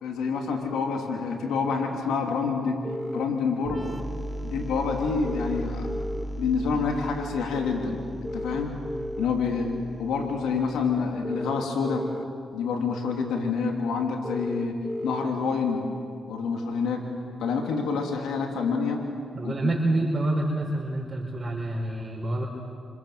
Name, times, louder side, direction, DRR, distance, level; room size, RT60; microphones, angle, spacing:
voice 1, 0.0-2.8 3.1-3.9 4.4-5.9 6.4-8.0 8.3-8.7 9.2-9.7 10.0-12.1 12.5-14.7 15.0-15.8 16.3-17.0 17.4-19.0 19.4-19.7, left 5 dB, 85° left, 2 dB, 3.0 m, -27 dB
sound 1, 2.8-3.2 5.2-6.2 8.2-9.2 11.2-12.2 14.2-15.2, left 1 dB, 5° left, 1.1 m, -33 dB
sound 2, 3.7-11.2, equal, 10° right, 2.0 m, -37 dB
voice 2, 19.3-22.5, right 2 dB, 35° right, -2 dB, 4.9 m, -27 dB
28.0 x 27.0 x 7.7 m, 2.3 s
supercardioid pair, 55°, 0 cm